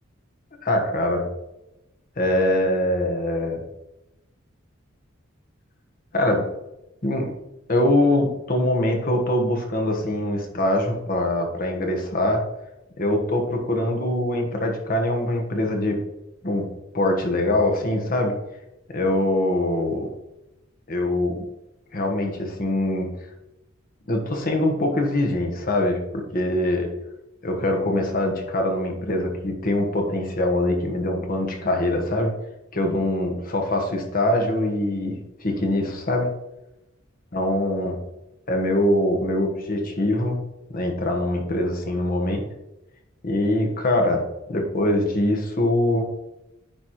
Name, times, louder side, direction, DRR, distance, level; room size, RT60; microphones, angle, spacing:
voice 1, 0.6-1.3 2.2-3.6 6.1-6.4 7.0-7.3 7.7-12.4 13.0-16.0 16.4-16.7 16.9-18.3 18.9-20.1 20.9-21.5 21.9-23.1 24.1-26.9 27.4-32.3 32.7-36.3 37.3-38.0 38.5-40.4 40.7-42.4 43.2-46.0, left 1 dB, 45° left, 2 dB, 1.2 m, -23 dB
9.9 x 4.2 x 3.1 m, 0.94 s
head